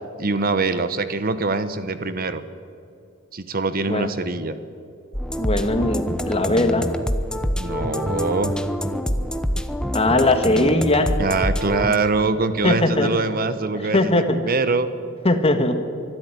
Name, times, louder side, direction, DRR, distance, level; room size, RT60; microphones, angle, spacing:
voice 1, 0.2-2.4 3.3-4.5 7.5-8.5 11.2-14.9, right 3 dB, 45° right, 12 dB, 1.0 m, -23 dB
sound 1, 5.1-12.0, equal, 5° left, 0.9 m, -26 dB
voice 2, 5.4-6.9 9.9-11.1 12.6-13.1 13.7-14.4 15.2-15.8, left 2 dB, 30° left, 7 dB, 1.7 m, -20 dB
24.0 x 13.0 x 9.8 m, 2.6 s
head